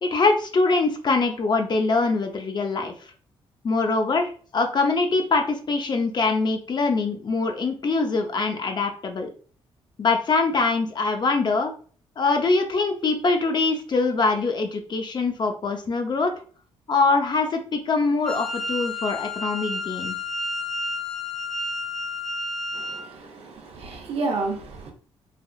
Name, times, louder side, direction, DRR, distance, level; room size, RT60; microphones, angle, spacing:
voice 1, 0.0-2.9 3.6-9.3 10.0-11.7 12.2-16.3 16.9-20.2, left 3 dB, 45° left, 4 dB, 0.6 m, -23 dB
Wind instrument woodwind instrument, 18.2-23.1, left 2 dB, 5° left, 0.6 m, -31 dB
voice 2, 22.7-24.9, right 3 dB, 65° right, 2 dB, 0.8 m, -31 dB
3.4 x 2.5 x 2.3 m, 0.43 s
cardioid pair, 70°, 11 cm